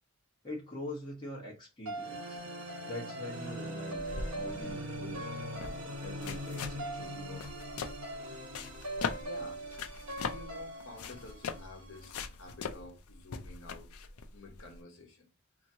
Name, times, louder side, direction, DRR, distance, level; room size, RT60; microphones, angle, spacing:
voice 1, 0.4-2.4 2.8-5.3 5.5-7.5, left 1 dB, 20° left, 1.0 m, -44 dB
sound 1, 1.8-12.1, right 1 dB, 80° right, 1.2 m, -41 dB
sound 2, 3.9-14.8, left 5 dB, 85° left, 0.4 m, -41 dB
voice 2, 9.2-9.6 10.2-15.3, left 2 dB, 65° left, 1.0 m, -50 dB
2.9 x 2.7 x 2.7 m
head